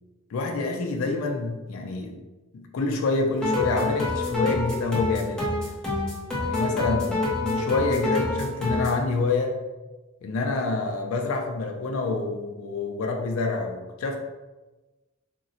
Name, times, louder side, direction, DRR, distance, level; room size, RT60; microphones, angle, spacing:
voice 1, 0.3-2.2 2.5-5.5 6.4-9.6 10.2-14.2, left 3 dB, 90° left, 3 dB, 0.4 m, -27 dB
sound 1, 3.4-9.0, left 2 dB, 5° left, 0.5 m, -27 dB
3.7 x 2.0 x 2.6 m, 1.2 s
head